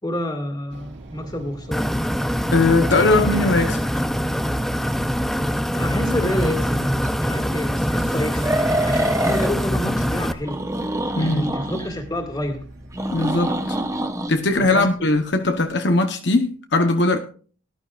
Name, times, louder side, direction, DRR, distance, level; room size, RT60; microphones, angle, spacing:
voice 1, 0.0-1.9 5.7-8.5 8.8-10.6 11.2-12.7 14.6-15.1, left 1 dB, 20° left, 2.2 m, -28 dB
sound 1, 0.7-15.8, right 1 dB, 65° right, 3.9 m, -41 dB
sound 2, 1.7-10.3, equal, ahead, 0.5 m, -23 dB
voice 2, 2.5-4.0 11.2-11.6 13.1-13.8 14.3-17.2, left 2 dB, 60° left, 1.0 m, -20 dB
sound 3, 7.0-7.1 8.4-9.5 10.5-11.9 12.9-14.3, right 1 dB, 15° right, 1.0 m, -25 dB
18.5 x 11.5 x 2.5 m
head